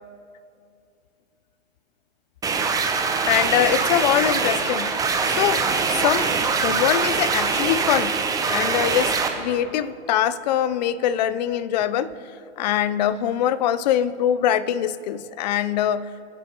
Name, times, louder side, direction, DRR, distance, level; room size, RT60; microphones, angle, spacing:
sound 1, 2.4-9.3, right 5 dB, 10° right, 0.8 m, -23 dB
voice 1, 3.3-8.2 8.5-12.2 12.6-16.1, left 10 dB, 40° left, 0.5 m, -23 dB
25.0 x 9.8 x 2.9 m
figure-of-eight pair, 115°, 35 cm